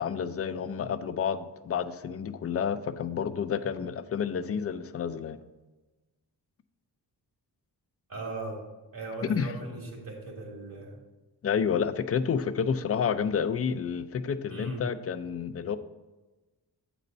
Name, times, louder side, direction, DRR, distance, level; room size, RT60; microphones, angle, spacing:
voice 1, 0.0-5.4 9.2-9.5 11.4-15.8, left 7 dB, 35° left, 11 dB, 0.4 m, -30 dB
voice 2, 8.1-8.6 8.9-11.0 14.5-14.9, right 2 dB, 60° right, -1 dB, 2.3 m, -38 dB
8.4 x 4.0 x 5.3 m, 1.2 s
wide cardioid pair, 105°, 40 cm